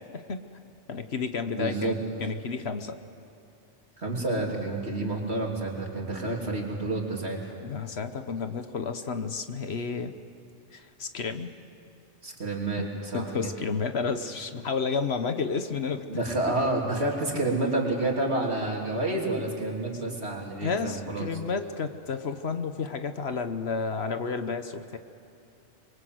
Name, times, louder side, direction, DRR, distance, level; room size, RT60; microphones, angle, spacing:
voice 1, 0.1-0.4 0.9-1.9 2.2-3.0 7.6-10.1 10.7-11.6 12.8-16.1 20.6-25.0, left 5 dB, 60° left, 9 dB, 1.3 m, -31 dB
voice 2, 1.5-2.0 4.0-7.4 12.2-13.5 16.1-21.3, right 2 dB, 60° right, 0 dB, 3.5 m, -29 dB
26.5 x 22.5 x 7.9 m, 2.8 s
omnidirectional pair, 1.3 m